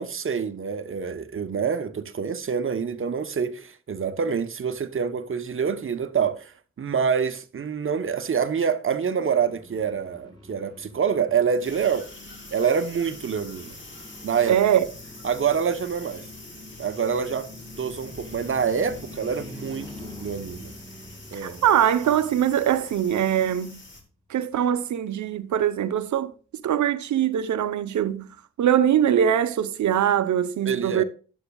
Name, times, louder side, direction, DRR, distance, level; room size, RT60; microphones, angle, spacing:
voice 1, 0.0-12.1 12.5-13.8 14.2-14.6 15.2-16.2 16.8-17.5 17.8-20.7 21.3-21.6 30.6-31.0, right 6 dB, 45° right, 0.9 m, -26 dB
sound 1, 9.3-23.5, left 2 dB, 15° left, 4.0 m, -46 dB
sound 2, 11.6-24.0, left 2 dB, 40° left, 2.7 m, -45 dB
voice 2, 14.5-14.9 21.3-23.8 24.3-26.3 26.6-28.3 28.6-31.0, right 10 dB, 70° right, 0.9 m, -22 dB
11.0 x 9.8 x 2.3 m
cardioid pair, 65°, 30 cm